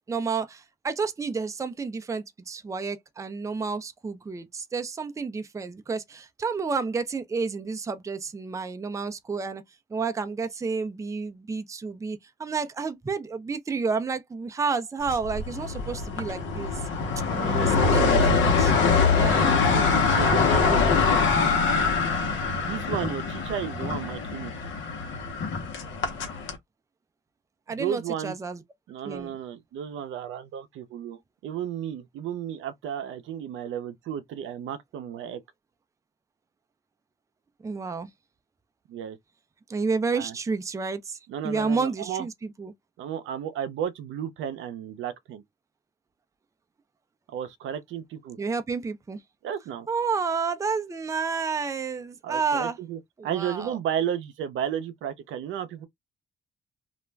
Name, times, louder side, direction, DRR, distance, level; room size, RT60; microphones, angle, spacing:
voice 1, 0.1-9.6 9.9-16.8 17.2-17.3 17.6-18.7 19.1-19.4 27.7-28.6 29.0-29.3 37.6-38.1 39.7-41.2 41.4-42.7 48.4-49.2 49.9-52.8 53.2-53.7, right 4 dB, 15° right, 0.4 m, -30 dB
sound 1, 15.1-26.6, left 4 dB, 75° left, 0.8 m, -24 dB
voice 2, 17.3-17.8 19.2-21.3 22.5-24.5 27.7-28.4 28.9-35.4 38.9-39.2 40.1-40.3 41.3-42.3 43.0-45.4 47.3-48.4 49.4-49.9 52.2-55.9, right 9 dB, 80° right, 0.5 m, -33 dB
2.4 x 2.1 x 3.2 m
cardioid pair, 90°, 20 cm